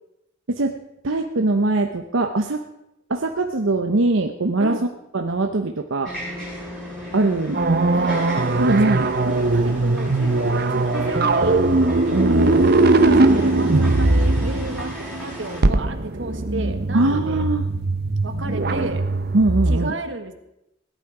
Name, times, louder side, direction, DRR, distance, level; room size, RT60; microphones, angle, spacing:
voice 1, 1.0-2.6 3.1-4.8 5.1-6.2 7.1-7.6 8.6-9.4 12.1-12.7 16.9-17.6 19.3-19.9, right 2 dB, 85° right, 4 dB, 0.9 m, -21 dB
sound 1, 6.0-15.6, equal, 5° left, 6.3 m, -35 dB
sound 2, 7.5-19.8, right 2 dB, 55° right, 0.8 m, -20 dB
voice 2, 7.9-8.5 8.8-9.0 9.5-11.6 13.0-17.4 18.2-19.0 19.7-20.3, right 2 dB, 70° right, 6 dB, 1.6 m, -32 dB
17.5 x 11.5 x 4.9 m, 0.87 s
head